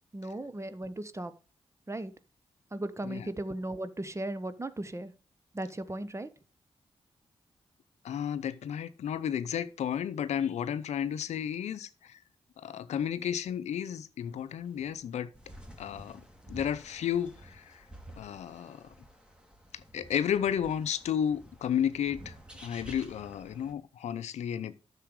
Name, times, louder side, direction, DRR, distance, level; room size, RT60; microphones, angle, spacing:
voice 1, 0.1-1.3 1.9-2.1 2.7-5.1 5.5-6.3, right 1 dB, 25° right, 1.2 m, -36 dB
voice 2, 8.0-12.2 12.6-15.3 15.8-16.2 16.5-17.8 18.2-18.9 19.7-22.3 22.6-24.7, left 9 dB, 85° left, 0.7 m, -32 dB
sound 1, 14.3-23.7, equal, 10° right, 2.9 m, -51 dB
10.0 x 6.9 x 4.8 m
supercardioid pair, 45°, 11 cm